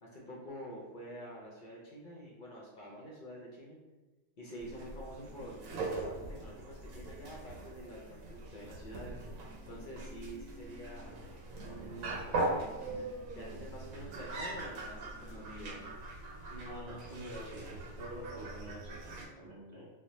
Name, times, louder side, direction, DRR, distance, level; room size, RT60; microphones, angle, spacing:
voice 1, 0.0-3.8 4.4-9.1 9.7-11.2 11.6-13.1 13.3-15.8, equal, 50° left, -3 dB, 0.7 m, -47 dB
sound 1, 4.6-19.2, right 2 dB, 80° right, 1.1 m, -41 dB
voice 2, 16.5-19.9, equal, 20° right, -7 dB, 1.0 m, -46 dB
4.2 x 2.1 x 3.1 m, 1.2 s
omnidirectional pair, 1.4 m